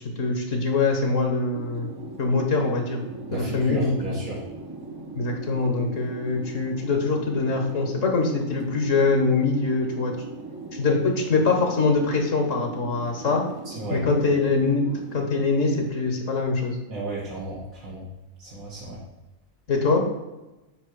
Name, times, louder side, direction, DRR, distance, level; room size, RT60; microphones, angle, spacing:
voice 1, 0.2-1.9 2.2-3.0 3.3-4.2 5.1-10.1 10.7-13.4 13.9-16.8 19.7-20.0, left 3 dB, 65° left, 3 dB, 1.5 m, -23 dB
sound 1, 1.5-15.9, right 3 dB, 25° right, 0.6 m, -39 dB
voice 2, 3.3-4.4 13.8-14.0 16.9-18.0 18.4-19.0, right 2 dB, 85° right, -6 dB, 1.9 m, -33 dB
8.5 x 3.0 x 6.3 m, 1.0 s
omnidirectional pair, 1.4 m